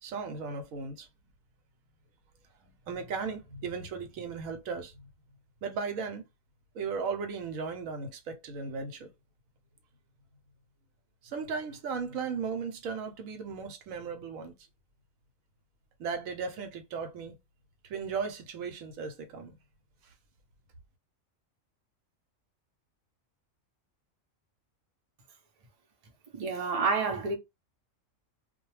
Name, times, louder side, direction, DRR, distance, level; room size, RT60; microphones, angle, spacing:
voice 1, 0.0-1.1 2.6-5.0 5.6-6.2 6.7-9.1 11.2-14.5 16.0-17.4 17.9-19.6, right 5 dB, 80° right, 1.1 m, -36 dB
voice 2, 26.3-27.3, right 4 dB, 40° right, 0.6 m, -29 dB
2.4 x 2.2 x 3.0 m
omnidirectional pair, 1.4 m